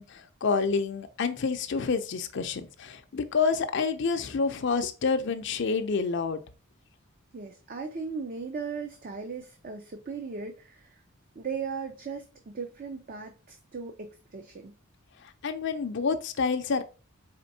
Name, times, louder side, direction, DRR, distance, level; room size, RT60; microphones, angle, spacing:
voice 1, 0.0-6.4 15.2-16.8, left 5 dB, 55° left, 0.5 m, -28 dB
voice 2, 7.3-11.0 11.4-14.7, right 5 dB, 40° right, 0.5 m, -37 dB
4.2 x 3.4 x 2.7 m
head